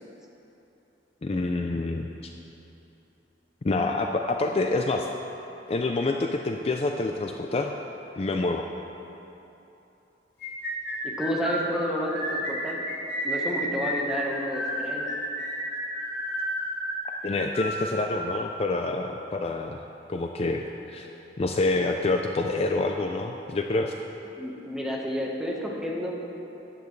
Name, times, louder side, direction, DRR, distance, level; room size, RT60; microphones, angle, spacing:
voice 1, 1.2-2.3 3.6-5.1 5.7-7.7 8.2-8.7 17.2-19.8 20.1-21.1 21.4-23.9, left 2 dB, 35° left, 3 dB, 0.4 m, -27 dB
sound 1, 10.4-18.4, equal, 85° left, 2.3 m, -31 dB
voice 2, 11.0-12.8 13.2-15.0 24.4-26.2, equal, 5° right, -3 dB, 1.2 m, -30 dB
13.5 x 10.0 x 3.2 m, 3.0 s
head